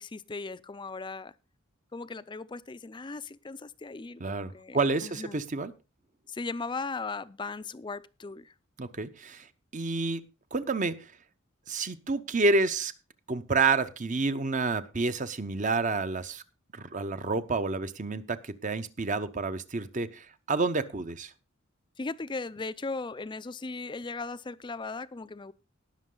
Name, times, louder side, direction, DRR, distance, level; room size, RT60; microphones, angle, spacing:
voice 1, 0.0-1.3 1.9-5.4 6.3-8.5 22.0-25.5, left 3 dB, 25° left, 0.5 m, -38 dB
voice 2, 4.2-5.7 8.8-9.5 9.7-10.2 10.5-11.1 11.7-12.9 13.3-16.4 16.7-21.3, right 3 dB, 40° right, 0.9 m, -29 dB
19.0 x 6.5 x 3.9 m
head